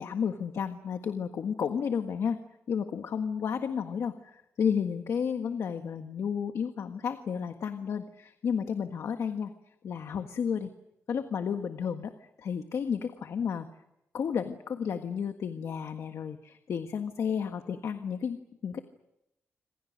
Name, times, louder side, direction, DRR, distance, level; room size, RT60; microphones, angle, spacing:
voice 1, 0.0-2.4 2.7-9.5 9.8-10.7 11.1-13.7 14.1-18.8, left 7 dB, 80° left, 7 dB, 1.5 m, -32 dB
27.0 x 26.5 x 6.5 m, 0.86 s
wide cardioid pair, 150°, 5 cm